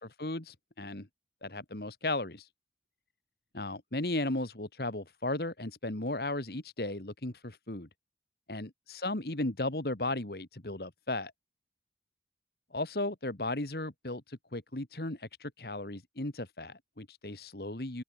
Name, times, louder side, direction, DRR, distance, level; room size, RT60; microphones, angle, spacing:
voice 1, 0.0-1.1 1.4-2.5 3.5-7.9 8.5-11.3 12.7-18.0, left 2 dB, 60° left, 2.1 m, -35 dB
open air
head